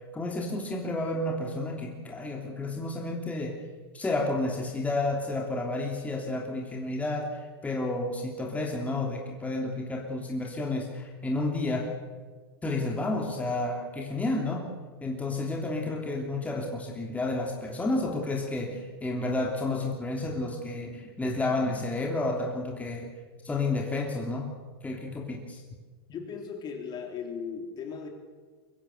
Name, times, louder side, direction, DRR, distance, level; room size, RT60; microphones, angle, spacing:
voice 1, 0.1-3.6 3.9-11.9 12.6-14.7 15.0-23.1 23.4-24.5 24.8-25.6, left 2 dB, 10° left, 0 dB, 3.2 m, -31 dB
voice 2, 26.1-28.1, left 6 dB, 30° left, 3 dB, 3.8 m, -37 dB
24.0 x 15.0 x 8.2 m, 1.4 s
hypercardioid pair, 110°, 13 cm